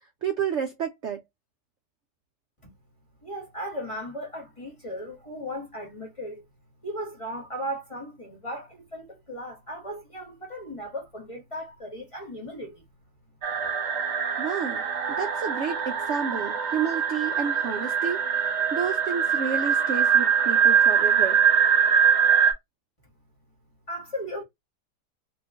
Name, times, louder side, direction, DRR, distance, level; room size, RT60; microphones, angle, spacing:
voice 1, 0.2-1.2 14.4-14.8 15.1-21.4, right 7 dB, 70° right, 0.6 m, -30 dB
voice 2, 3.2-6.4 6.8-12.8 23.9-24.4, equal, 20° left, 1.0 m, -36 dB
sound 1, 13.4-22.5, right 7 dB, 45° right, 1.2 m, -23 dB
2.9 x 2.5 x 3.5 m
omnidirectional pair, 1.9 m